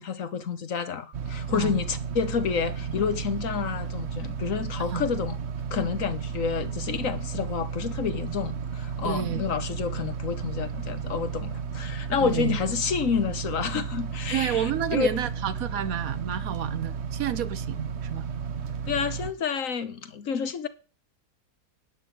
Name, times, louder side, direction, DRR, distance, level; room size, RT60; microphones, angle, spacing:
voice 1, 0.0-5.4 5.7-15.1 18.9-20.7, left 6 dB, 60° left, 1.4 m, -29 dB
sound 1, 1.1-19.3, right 6 dB, 50° right, 1.1 m, -33 dB
voice 2, 9.0-9.4 12.2-12.6 14.3-18.3, right 9 dB, 70° right, 1.2 m, -30 dB
12.5 x 6.1 x 9.2 m
omnidirectional pair, 1.6 m